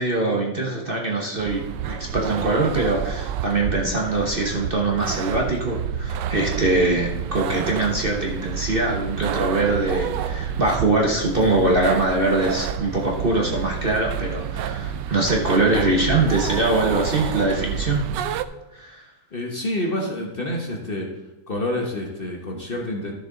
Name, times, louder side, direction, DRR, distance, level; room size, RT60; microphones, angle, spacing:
voice 1, 0.0-18.0 18.7-19.1, right 2 dB, 35° right, 0 dB, 1.1 m, -23 dB
sound 1, 1.4-18.4, right 8 dB, 80° right, 1.2 m, -29 dB
voice 2, 19.3-21.1 21.5-23.1, left 1 dB, 35° left, 0 dB, 1.2 m, -28 dB
12.5 x 6.9 x 3.9 m, 1.0 s
omnidirectional pair, 1.9 m